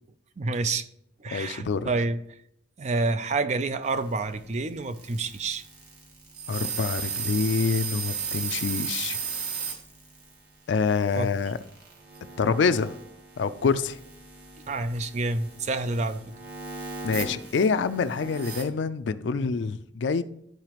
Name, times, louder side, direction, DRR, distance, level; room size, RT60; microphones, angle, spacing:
voice 1, 0.4-0.9 1.2-2.2 2.8-5.6 11.2-11.3 14.7-16.2, right 3 dB, 40° right, 11 dB, 0.4 m, -28 dB
voice 2, 1.3-1.9 6.5-9.2 10.7-11.6 12.4-12.9 13.4-14.0 17.0-20.2, left 5 dB, 80° left, 12 dB, 0.4 m, -26 dB
sound 1, 3.8-18.6, right 6 dB, 60° right, 1.7 m, -37 dB
12.0 x 4.8 x 3.0 m, 0.74 s
head